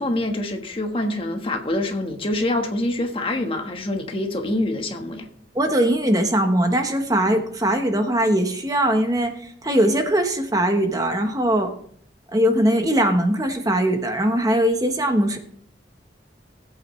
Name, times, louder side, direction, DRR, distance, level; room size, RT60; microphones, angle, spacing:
voice 1, 0.0-5.3, left 1 dB, 30° left, 4 dB, 1.4 m, -25 dB
voice 2, 5.5-11.7 12.3-15.4, right 1 dB, 20° right, 5 dB, 1.1 m, -20 dB
19.5 x 8.4 x 3.2 m, 0.62 s
head